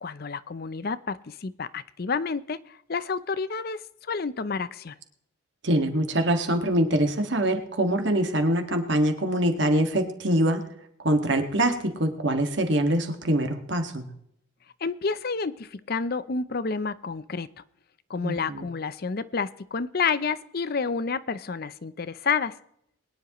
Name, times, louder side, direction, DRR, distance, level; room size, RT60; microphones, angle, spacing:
voice 1, 0.0-4.9 14.8-17.5 18.1-22.6, left 5 dB, 50° left, 15 dB, 0.6 m, -29 dB
voice 2, 5.6-10.6 11.0-14.1 18.2-18.7, right 1 dB, 60° right, 5 dB, 1.8 m, -24 dB
22.0 x 10.5 x 3.0 m, 0.73 s
head